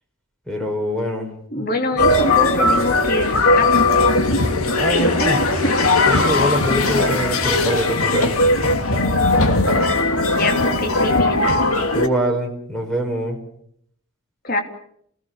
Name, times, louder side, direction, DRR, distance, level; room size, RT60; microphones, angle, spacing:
voice 1, 0.5-1.3 1.6-1.7 4.7-5.4 6.1-8.4 11.9-13.4, equal, 5° left, 2 dB, 5.1 m, -23 dB
voice 2, 1.5-3.8 5.2-5.7 10.2-11.5 14.4-14.6, left 2 dB, 40° left, 4 dB, 3.1 m, -25 dB
sound 1, 2.0-12.1, left 2 dB, 85° left, 2.9 m, -18 dB
29.5 x 18.5 x 7.2 m, 0.69 s
head